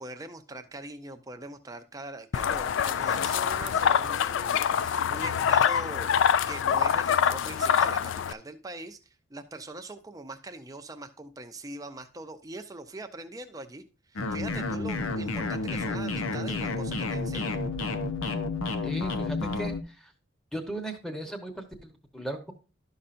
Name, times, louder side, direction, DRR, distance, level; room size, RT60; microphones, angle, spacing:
voice 1, 0.0-6.1 6.5-9.0 9.3-17.6, right 2 dB, 15° right, 7 dB, 0.6 m, -42 dB
sound 1, 2.3-8.3, left 8 dB, 65° left, 0.3 m, -25 dB
sound 2, 14.2-19.8, left 3 dB, 85° left, 0.8 m, -30 dB
voice 2, 18.8-20.1 20.5-22.5, right 1 dB, 5° left, 4 dB, 1.0 m, -37 dB
12.0 x 5.6 x 2.5 m, 0.31 s
head